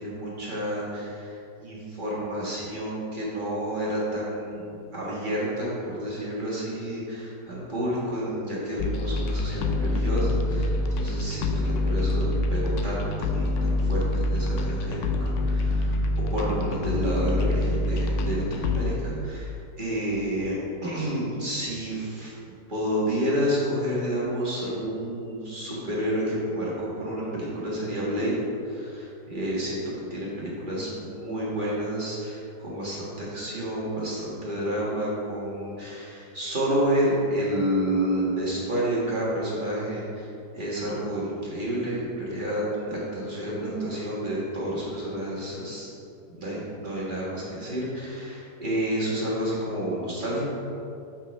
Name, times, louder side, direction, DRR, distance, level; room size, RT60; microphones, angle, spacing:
voice 1, 0.0-16.0 16.3-22.3 22.7-28.3 28.6-29.8 30.1-45.9 46.3-50.4, equal, 30° right, -6 dB, 1.5 m, -30 dB
sound 1, 8.8-18.9, left 2 dB, 75° left, 0.7 m, -26 dB
5.7 x 4.6 x 5.9 m, 2.6 s
omnidirectional pair, 1.9 m